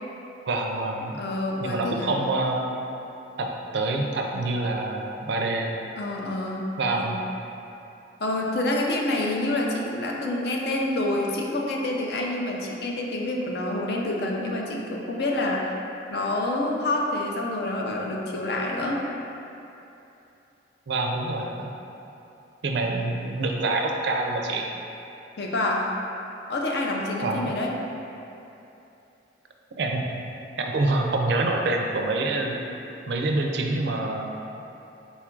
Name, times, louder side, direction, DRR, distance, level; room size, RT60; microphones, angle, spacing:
voice 1, 0.5-1.2 1.6-2.7 3.4-3.5 3.7-5.7 6.8-7.2 20.9-21.7 22.6-24.6 27.2-27.5 29.8-30.1 30.6-32.6 33.1-34.3, right 2 dB, 65° right, 1 dB, 0.4 m, -26 dB
voice 2, 1.2-2.1 6.0-7.2 8.2-15.7 16.1-19.0 25.4-25.9 26.5-27.7, left 1 dB, 60° left, -1 dB, 0.5 m, -27 dB
4.2 x 2.4 x 4.4 m, 2.8 s
head